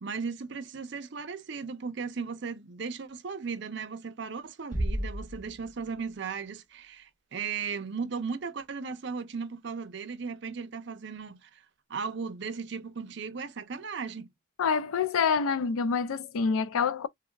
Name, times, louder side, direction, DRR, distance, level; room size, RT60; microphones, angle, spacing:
voice 1, 0.0-11.6 11.9-14.3, right 5 dB, 60° right, 0.6 m, -36 dB
Bass drum, 4.7-6.2, equal, 20° left, 1.5 m, -33 dB
voice 2, 14.6-17.1, left 5 dB, 90° left, 0.4 m, -27 dB
3.4 x 3.4 x 2.2 m
head